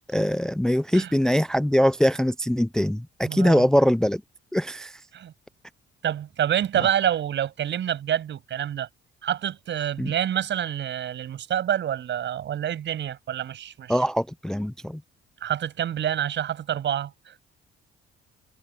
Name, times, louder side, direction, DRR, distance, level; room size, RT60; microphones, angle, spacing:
voice 1, 0.0-4.2 4.5-4.9 10.0-10.1 13.9-15.0, equal, 5° left, 0.4 m, -22 dB
voice 2, 3.2-3.7 5.1-5.3 6.0-8.9 9.2-14.0 15.4-17.3, right 10 dB, 65° right, 7.1 m, -27 dB
cardioid pair, 90°, 20 cm